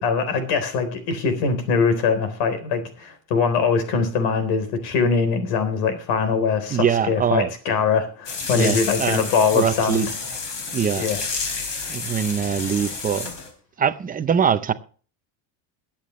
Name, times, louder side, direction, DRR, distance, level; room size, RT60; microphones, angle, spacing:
voice 1, 0.0-10.1 10.9-11.2 11.8-12.0, left 5 dB, 70° left, 3.9 m, -22 dB
voice 2, 6.7-7.5 8.5-9.3 9.5-10.1 10.7-11.1 11.9-13.3 13.8-14.7, right 8 dB, 20° right, 0.6 m, -22 dB
sound 1, 8.3-13.5, left 4 dB, 40° left, 4.4 m, -30 dB
22.0 x 8.7 x 3.2 m
cardioid pair, 150°, 46 cm